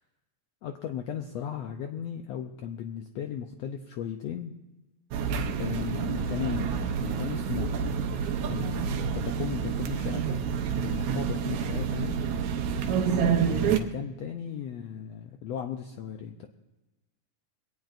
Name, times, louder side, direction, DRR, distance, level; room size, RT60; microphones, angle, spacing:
voice 1, 0.6-4.5 5.6-7.7 8.4-10.4 10.8-12.3 13.3-16.5, left 9 dB, 80° left, 5 dB, 1.5 m, -36 dB
sound 1, 5.1-13.8, right 7 dB, 70° right, 1.9 m, -28 dB
21.5 x 17.5 x 2.6 m, 1.0 s
omnidirectional pair, 3.8 m